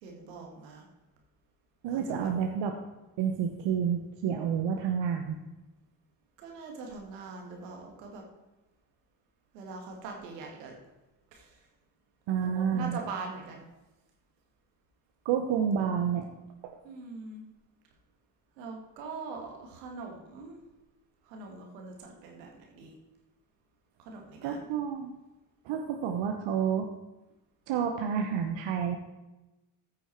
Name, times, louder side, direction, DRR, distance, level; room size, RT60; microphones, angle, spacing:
voice 1, 0.0-0.9 1.9-2.3 6.4-8.2 9.5-10.7 11.3-11.7 12.4-13.6 16.8-17.4 18.6-20.6 21.2-22.9 24.0-24.6, right 4 dB, 85° right, 1 dB, 2.0 m, -42 dB
voice 2, 1.8-2.7 3.2-5.4 12.3-13.0 15.2-16.3 16.6-16.7 24.4-25.1 25.6-26.9 27.7-29.0, right 7 dB, 65° right, 3 dB, 1.1 m, -29 dB
14.0 x 6.3 x 4.6 m, 1.0 s
hypercardioid pair, 45°, 48 cm